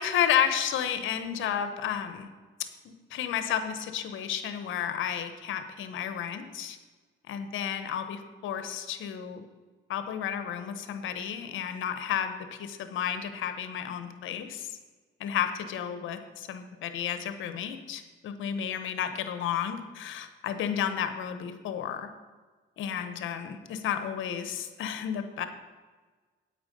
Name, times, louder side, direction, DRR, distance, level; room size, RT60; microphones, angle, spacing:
voice 1, 0.0-2.3 2.6-6.8 7.3-9.4 9.9-14.8 15.2-22.1 22.8-25.5, left 9 dB, 80° left, 9 dB, 1.0 m, -32 dB
9.0 x 8.8 x 5.4 m, 1.4 s
cardioid pair, 90°, 20 cm